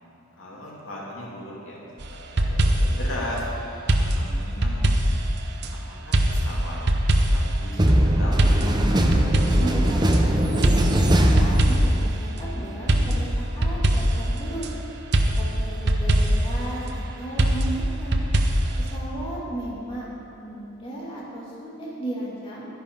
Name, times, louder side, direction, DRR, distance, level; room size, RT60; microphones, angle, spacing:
voice 1, 0.4-1.8 2.1-3.5 4.0-4.9 5.7-6.8 7.3-9.3, left 1 dB, 75° left, -5 dB, 2.6 m, -37 dB
sound 1, 2.0-3.1 3.9-5.7 6.1-7.6 8.4-10.2 10.6-12.1 12.9-14.7 15.1-16.6 17.4-19.0, right 1 dB, 55° right, 0.8 m, -22 dB
sound 2, 7.8-12.3, right 1 dB, 20° right, 0.8 m, -20 dB
voice 2, 9.6-14.6 15.4-18.3 18.8-22.7, right 1 dB, 25° left, -7 dB, 2.3 m, -35 dB
11.5 x 10.5 x 5.3 m, 2.8 s
head